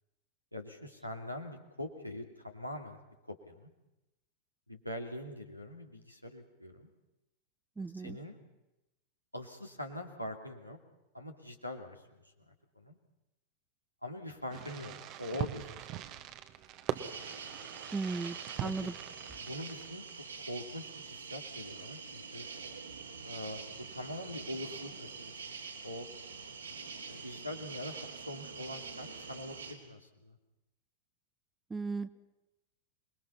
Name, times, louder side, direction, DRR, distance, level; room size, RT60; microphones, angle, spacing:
voice 1, 0.5-3.0 3.3-3.7 4.7-6.9 8.0-8.4 9.3-10.8 11.1-13.0 14.0-14.9 15.2-16.0 18.6-18.9 19.4-22.5 23.2-25.5 25.8-26.1 27.1-30.4, left 1 dB, 90° left, 2 dB, 2.7 m, -43 dB
voice 2, 7.8-8.2 17.9-18.9 31.7-32.1, right 4 dB, 10° right, 14 dB, 0.9 m, -36 dB
Fireworks, 14.5-20.1, right 11 dB, 40° right, 1.3 m, -41 dB
sound 1, 16.9-29.7, right 5 dB, 75° right, 3.2 m, -45 dB
27.0 x 21.5 x 5.7 m, 0.92 s
figure-of-eight pair, 90°, 0 cm